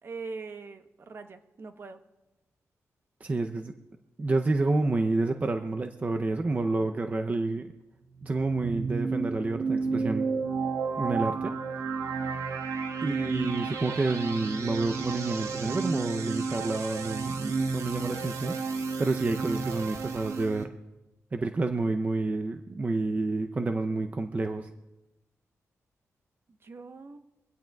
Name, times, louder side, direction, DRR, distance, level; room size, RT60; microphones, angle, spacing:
voice 1, 0.0-2.0 26.6-27.2, right 4 dB, 45° right, 8 dB, 0.9 m, -42 dB
voice 2, 3.2-3.7 4.2-7.7 8.2-10.3 11.0-11.5 13.0-18.6 19.0-20.7 21.3-24.7, right 3 dB, 30° right, 6 dB, 0.6 m, -29 dB
sound 1, 8.1-20.6, right 4 dB, 70° right, 1.1 m, -32 dB
24.0 x 16.5 x 2.3 m, 0.98 s
wide cardioid pair, 130°, 6 cm